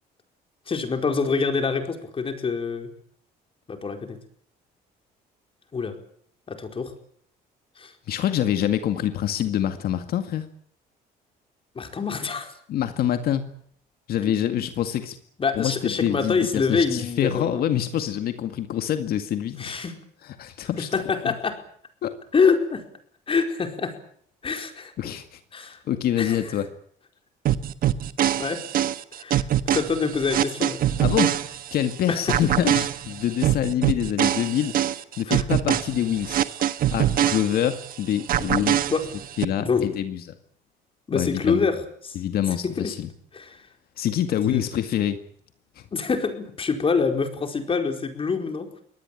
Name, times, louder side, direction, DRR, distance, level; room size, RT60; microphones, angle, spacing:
voice 1, 0.7-2.9 3.7-4.2 5.7-6.0 6.5-6.9 7.8-7.9 11.7-12.5 14.2-14.7 15.4-17.6 19.6-19.9 20.9-21.6 22.3-22.8 23.3-24.0 24.4-24.9 25.5-25.8 26.2-26.4 28.4-28.6 29.2-30.8 32.1-32.2 35.3-35.4 38.9-39.0 39.6-40.0 41.1-42.2 42.6-42.9 43.3-43.6 44.5-44.6 45.9-48.7, left 5 dB, 35° left, 5 dB, 4.7 m, -26 dB
voice 2, 8.1-10.5 12.7-13.5 14.1-15.2 15.5-19.8 20.2-21.3 22.0-22.2 25.0-25.4 25.9-26.7 31.0-34.8 35.2-36.4 36.9-38.8 39.4-40.3 41.1-41.7 42.2-43.1 44.0-45.2 45.8-45.9, left 10 dB, 65° left, 8 dB, 2.1 m, -26 dB
sound 1, 27.5-31.9 32.3-37.9 38.3-39.5, right 11 dB, 60° right, 1.4 m, -24 dB
24.0 x 18.5 x 9.2 m, 0.64 s
cardioid pair, 110°, 17 cm